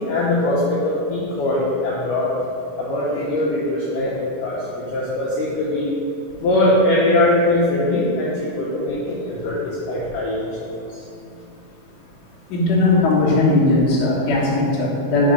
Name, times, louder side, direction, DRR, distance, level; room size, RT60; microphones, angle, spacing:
voice 1, 0.0-2.3 2.8-4.1 4.4-5.9 6.4-10.7, left 1 dB, 80° left, -7 dB, 1.9 m, -21 dB
voice 2, 12.5-15.3, left 2 dB, 60° left, -7 dB, 1.8 m, -18 dB
6.4 x 3.7 x 5.2 m, 2.5 s
omnidirectional pair, 4.7 m